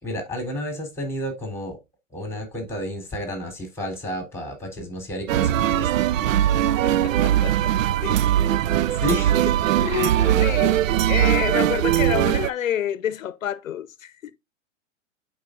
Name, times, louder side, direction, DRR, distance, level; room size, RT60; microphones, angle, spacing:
voice 1, 0.0-1.8 2.1-6.1 9.0-9.4, left 1 dB, 5° left, 3.4 m, -31 dB
sound 1, 5.3-12.5, right 12 dB, 85° right, 0.5 m, -20 dB
voice 2, 6.8-7.7 8.0-8.2 9.8-10.8 11.0-14.3, left 10 dB, 90° left, 0.7 m, -28 dB
12.5 x 4.7 x 2.5 m
hypercardioid pair, 120°, 38 cm